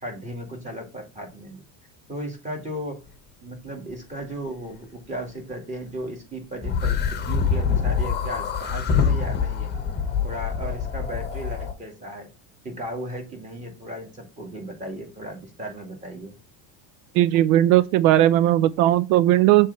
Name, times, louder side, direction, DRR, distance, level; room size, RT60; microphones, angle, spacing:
voice 1, 0.0-1.6 2.1-3.0 3.4-9.7 10.2-12.3 12.6-16.4, right 1 dB, 15° right, 2.2 m, -35 dB
sound 1, 6.6-11.7, left 6 dB, 25° left, 0.9 m, -25 dB
voice 2, 17.2-19.7, right 13 dB, 85° right, 0.5 m, -17 dB
7.1 x 3.4 x 4.1 m
cardioid pair, 150°, 43 cm